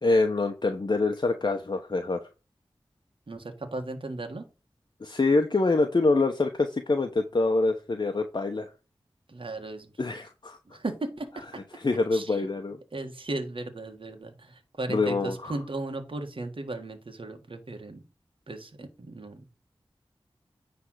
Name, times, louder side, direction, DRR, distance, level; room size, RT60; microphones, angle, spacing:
voice 1, 0.0-2.2 5.0-8.7 10.0-10.6 11.7-12.8 14.9-15.5, left 3 dB, 50° left, 5 dB, 0.8 m, -25 dB
voice 2, 3.3-4.5 9.3-9.9 10.6-11.4 12.1-12.5 12.9-18.0 18.5-19.6, right 2 dB, 60° right, 5 dB, 1.6 m, -36 dB
9.7 x 3.5 x 6.4 m, 0.31 s
wide cardioid pair, 50°, 10 cm